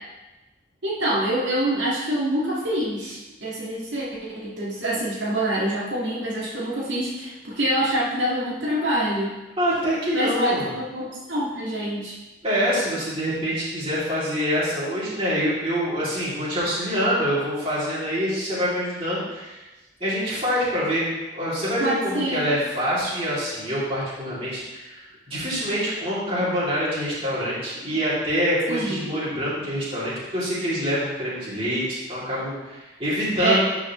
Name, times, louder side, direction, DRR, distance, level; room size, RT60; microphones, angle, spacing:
voice 1, 0.8-9.3 10.1-12.2 21.8-22.5 28.7-29.0 33.4-33.6, right 1 dB, 90° right, -6 dB, 1.8 m, -26 dB
voice 2, 9.6-10.7 12.4-19.7 20.0-21.1 21.3-33.6, equal, 30° right, -9 dB, 2.6 m, -25 dB
11.5 x 4.8 x 3.1 m, 1.1 s
head